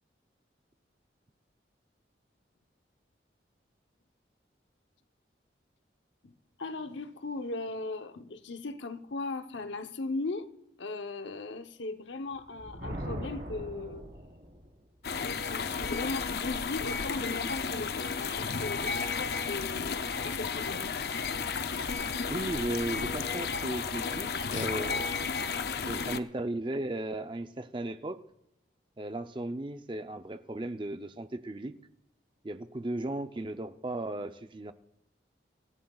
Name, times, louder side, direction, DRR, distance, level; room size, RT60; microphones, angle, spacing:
voice 1, 6.6-10.5 10.8-14.0 15.1-20.9 24.5-24.7, left 3 dB, 85° left, 9 dB, 0.9 m, -38 dB
Thunder, 12.3-14.7, equal, 60° right, 3.9 m, -40 dB
sound 1, 15.0-26.2, left 5 dB, 55° left, 0.6 m, -33 dB
voice 2, 22.3-25.1 25.8-28.2 29.0-31.8 32.4-34.7, right 1 dB, 25° right, 9 dB, 0.6 m, -36 dB
25.5 x 14.5 x 2.4 m, 0.83 s
head